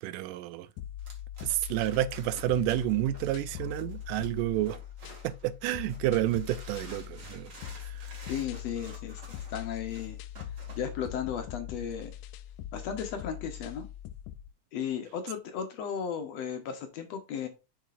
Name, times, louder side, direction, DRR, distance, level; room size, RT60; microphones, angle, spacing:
voice 1, 0.0-0.7 1.4-4.8 5.2-8.1, right 14 dB, 90° right, 2.2 m, -30 dB
sound 1, 0.8-14.5, left 11 dB, 80° left, 1.8 m, -42 dB
sound 2, 1.0-5.5 5.9-10.9, right 2 dB, 30° right, 1.8 m, -51 dB
voice 2, 8.3-10.2 10.8-12.1 12.7-13.9 14.7-17.5, left 8 dB, 65° left, 1.9 m, -35 dB
7.2 x 5.9 x 2.4 m
omnidirectional pair, 3.7 m